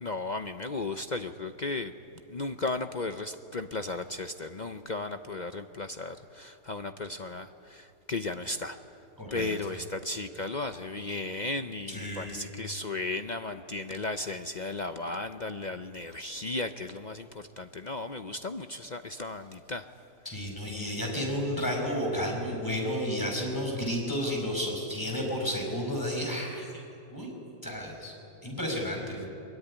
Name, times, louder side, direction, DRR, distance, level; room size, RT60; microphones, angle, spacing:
voice 1, 0.0-1.9 2.3-8.8 9.3-19.9, left 2 dB, 50° left, 8 dB, 0.5 m, -35 dB
voice 2, 9.2-9.5 11.9-12.3 20.3-26.7 27.1-27.3 27.6-28.1 28.4-29.3, equal, 10° left, 0 dB, 5.7 m, -32 dB
23.0 x 22.0 x 9.9 m, 2.7 s
omnidirectional pair, 1.7 m